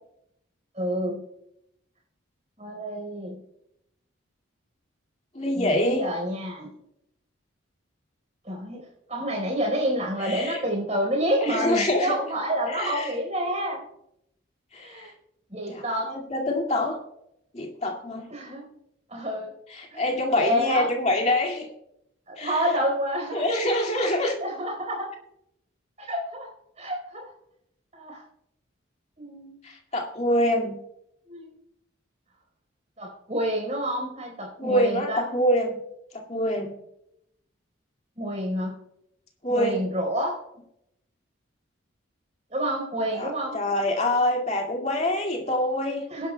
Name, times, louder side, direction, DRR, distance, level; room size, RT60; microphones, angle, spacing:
voice 1, 0.7-1.2 2.6-3.3 5.5-6.7 8.4-13.8 14.8-15.1 15.5-16.1 18.3-18.7 19.1-19.5 19.9-20.0 20.4-20.9 22.3-23.4 24.0-24.1 24.4-25.1 26.0-26.5 26.8-27.3 27.9-28.2 29.2-29.5 31.3-31.5 33.0-35.2 38.2-38.8 39.5-40.4 42.5-43.6 46.1-46.3, equal, 35° right, 0 dB, 4.3 m, -28 dB
voice 2, 5.3-6.1 10.2-10.6 11.4-12.2 12.7-13.1 14.7-15.1 15.7-17.0 17.5-18.3 19.7-21.7 22.4-22.6 23.3-24.4 29.6-30.8 34.6-35.7 36.3-36.7 39.4-39.8 43.1-46.0, left 1 dB, 35° left, 1 dB, 2.2 m, -25 dB
22.0 x 11.5 x 2.3 m, 0.80 s
head